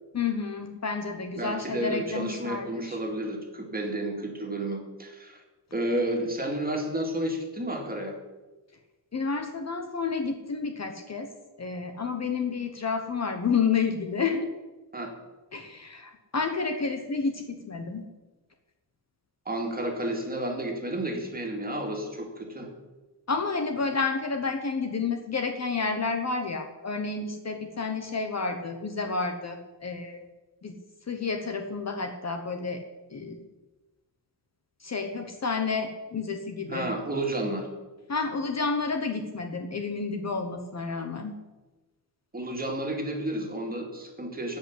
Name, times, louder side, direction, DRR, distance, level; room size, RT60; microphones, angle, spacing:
voice 1, 0.1-3.0 9.1-11.3 11.6-14.5 15.5-18.0 23.3-30.2 30.6-30.7 31.1-32.8 33.1-33.4 34.8-36.9 38.1-41.3, left 4 dB, 35° left, 5 dB, 1.1 m, -30 dB
voice 2, 1.4-5.4 5.7-8.2 14.9-15.1 19.5-22.7 36.7-37.7 42.3-44.6, right 1 dB, 20° right, 1 dB, 2.4 m, -31 dB
14.0 x 5.7 x 9.7 m, 1.2 s
wide cardioid pair, 155°, 44 cm